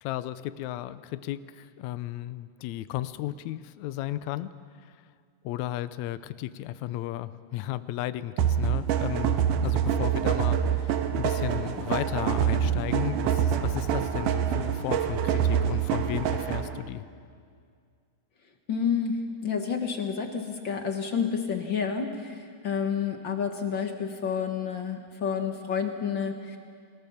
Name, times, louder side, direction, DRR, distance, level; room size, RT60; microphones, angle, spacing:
voice 1, 0.0-4.5 5.4-17.1, left 14 dB, 75° left, 14 dB, 1.8 m, -34 dB
sound 1, 8.4-16.8, right 9 dB, 80° right, 2.7 m, -26 dB
voice 2, 18.7-26.6, left 6 dB, 55° left, 5 dB, 1.4 m, -29 dB
29.0 x 19.5 x 7.2 m, 2.1 s
omnidirectional pair, 3.8 m